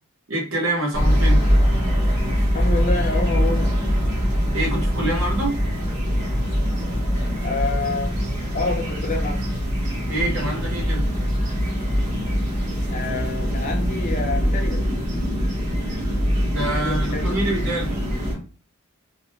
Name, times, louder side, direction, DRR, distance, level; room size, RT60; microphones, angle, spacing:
voice 1, 0.3-1.4 4.5-5.6 10.1-11.0 16.5-17.9, right 1 dB, 60° right, -3 dB, 1.0 m, -26 dB
sound 1, 0.9-18.3, equal, 35° right, 0.8 m, -22 dB
voice 2, 2.5-3.7 7.4-8.2 8.5-9.4 12.9-14.9 16.7-17.3, left 3 dB, 35° left, 2 dB, 0.5 m, -28 dB
2.4 x 2.0 x 2.8 m, 0.36 s
head